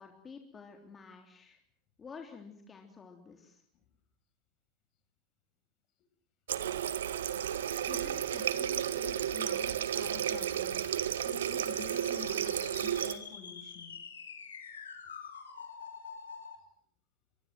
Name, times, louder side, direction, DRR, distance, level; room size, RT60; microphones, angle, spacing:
voice 1, 0.0-1.6 2.0-3.6, left 5 dB, 25° left, 4 dB, 3.4 m, -50 dB
Water tap faucet, 6.5-13.2, right 10 dB, 80° right, 1.6 m, -33 dB
sound 1, 6.8-16.6, left 6 dB, 85° left, 4.3 m, -49 dB
voice 2, 7.8-14.0, left 6 dB, 50° left, 10 dB, 5.9 m, -49 dB
24.0 x 24.0 x 7.7 m, 0.65 s
hypercardioid pair, 95°, 0 cm